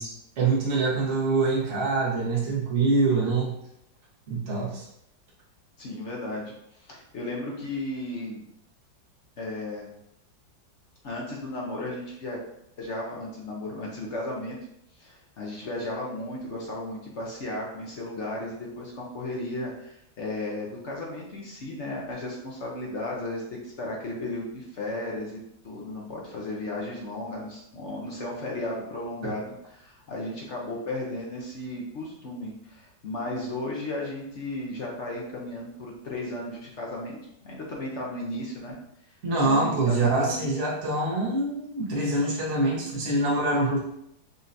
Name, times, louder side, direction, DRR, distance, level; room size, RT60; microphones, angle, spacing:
voice 1, 0.0-3.5 4.3-4.8 39.2-43.8, right 3 dB, 45° right, -5 dB, 1.3 m, -25 dB
voice 2, 5.8-6.5 6.8-8.4 9.4-9.9 11.0-12.4 12.8-14.6 15.0-25.4 25.6-38.8 39.4-40.5, left 1 dB, 55° left, -2 dB, 0.8 m, -35 dB
5.4 x 2.7 x 2.6 m, 0.76 s
omnidirectional pair, 2.0 m